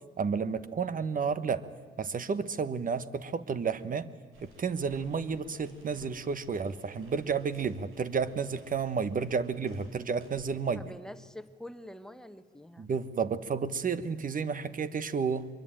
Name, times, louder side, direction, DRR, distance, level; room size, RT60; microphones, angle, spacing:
voice 1, 0.2-1.6 2.0-4.1 4.4-10.8 12.8-15.5, right 5 dB, 45° right, 13 dB, 1.3 m, -31 dB
sound 1, 4.3-10.5, right 2 dB, 90° right, 7.0 m, -57 dB
voice 2, 10.7-12.9, left 1 dB, 5° left, 10 dB, 1.4 m, -46 dB
24.0 x 22.5 x 9.0 m, 1.5 s
cardioid pair, 90°, 20 cm